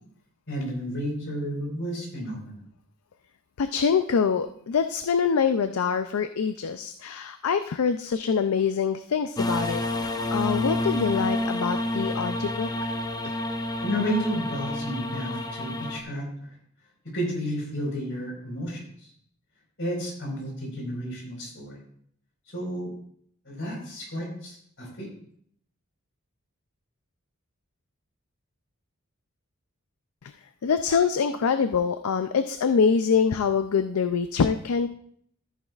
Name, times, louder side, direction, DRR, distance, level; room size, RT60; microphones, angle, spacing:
voice 1, 0.5-2.6 13.8-16.3 17.1-19.1 19.8-21.8 22.5-22.9 23.4-25.1, equal, 60° left, -2 dB, 4.5 m, -32 dB
voice 2, 3.6-12.7 30.6-34.9, left 6 dB, 75° left, 10 dB, 0.4 m, -25 dB
sound 1, 9.4-16.0, left 1 dB, 20° left, 0.6 m, -29 dB
13.5 x 9.3 x 2.4 m, 0.66 s
head